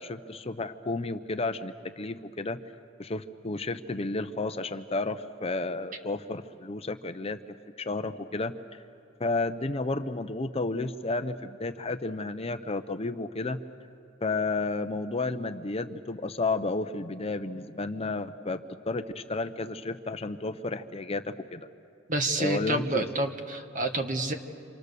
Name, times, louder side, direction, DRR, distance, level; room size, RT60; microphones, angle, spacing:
voice 1, 0.0-2.6 3.0-7.4 7.8-8.8 9.2-13.6 14.2-21.7 22.4-23.1, left 3 dB, 30° left, 9 dB, 0.7 m, -32 dB
voice 2, 22.1-24.3, right 2 dB, 40° right, 5 dB, 1.6 m, -28 dB
28.0 x 26.5 x 6.8 m, 2.4 s
head